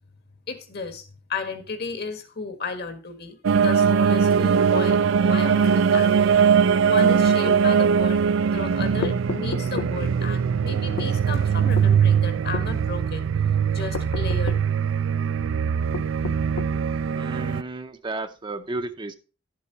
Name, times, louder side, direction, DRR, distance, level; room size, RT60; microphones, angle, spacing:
voice 1, 0.5-6.2 6.8-13.2 13.7-14.6, left 4 dB, 55° left, 9 dB, 1.5 m, -33 dB
sound 1, 3.4-17.6, right 6 dB, 80° right, 0.4 m, -21 dB
sound 2, 9.0-10.0 11.0-11.2 11.8-11.9 12.5-12.7 13.9-14.7 15.9-16.8, left 5 dB, 85° left, 0.5 m, -32 dB
voice 2, 17.1-19.2, right 2 dB, 25° right, 7 dB, 0.6 m, -33 dB
11.0 x 7.5 x 3.9 m, 0.33 s
head